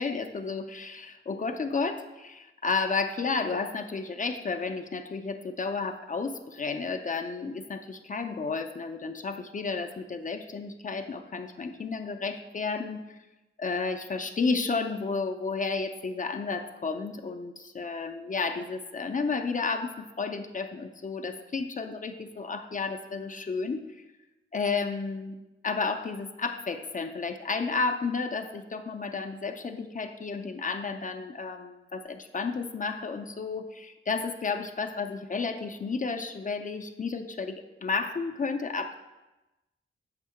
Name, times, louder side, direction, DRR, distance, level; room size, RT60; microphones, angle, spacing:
voice 1, 0.0-13.2 13.6-23.8 24.5-25.4 25.6-38.9, left 4 dB, 40° left, 6 dB, 0.4 m, -32 dB
7.9 x 2.8 x 5.7 m, 1.0 s
wide cardioid pair, 145°, 21 cm